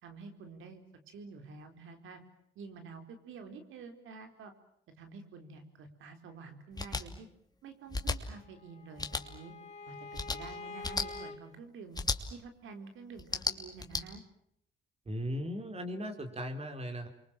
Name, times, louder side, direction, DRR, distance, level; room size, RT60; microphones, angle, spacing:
voice 1, 0.0-2.2 2.6-4.5 5.0-7.3 7.6-9.5 9.9-12.0 12.3-14.2, right 4 dB, 80° right, 7 dB, 4.2 m, -49 dB
sound 1, 6.8-7.0 7.9-8.2 9.0-9.2 10.1-10.4 10.8-11.1 11.9-12.2 13.2-14.0, left 3 dB, 20° left, 2.8 m, -33 dB
Bowed string instrument, 8.2-11.4, left 3 dB, 35° left, 5.3 m, -46 dB
voice 2, 15.1-17.1, equal, 30° right, 6 dB, 4.3 m, -37 dB
29.5 x 24.0 x 7.4 m, 0.71 s
cardioid pair, 90°, 20 cm